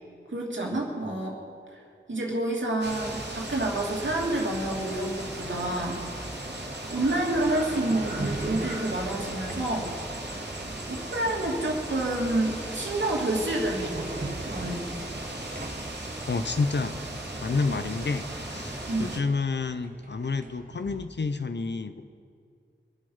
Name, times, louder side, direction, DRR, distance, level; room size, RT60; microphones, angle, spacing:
voice 1, 0.3-1.4 1.7-1.8 2.1-6.0 6.9-9.9 10.9-14.9 18.9-19.1, right 1 dB, 85° right, -2 dB, 2.7 m, -29 dB
sound 1, 2.8-19.2, right 1 dB, 65° right, 2.4 m, -37 dB
sound 2, 7.0-9.9 12.5-12.8 13.1-15.9 18.4-18.5 18.8-21.1, right 2 dB, 45° right, 1.2 m, -39 dB
voice 2, 16.3-17.0 17.4-22.0, left 4 dB, 70° left, 10 dB, 0.8 m, -29 dB
24.5 x 9.1 x 5.6 m, 2.4 s
wide cardioid pair, 60°, 19 cm